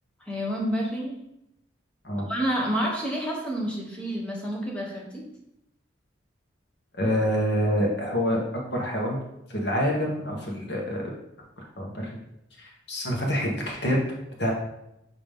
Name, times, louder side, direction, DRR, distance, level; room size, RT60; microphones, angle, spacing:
voice 1, 0.3-1.2 2.2-5.2, equal, 5° left, -3 dB, 1.1 m, -29 dB
voice 2, 6.9-8.4 8.7-9.2 9.5-11.1 11.6-12.1 12.6-14.0 14.4-14.5, equal, 65° left, -1 dB, 1.2 m, -26 dB
8.9 x 3.0 x 3.6 m, 0.84 s
head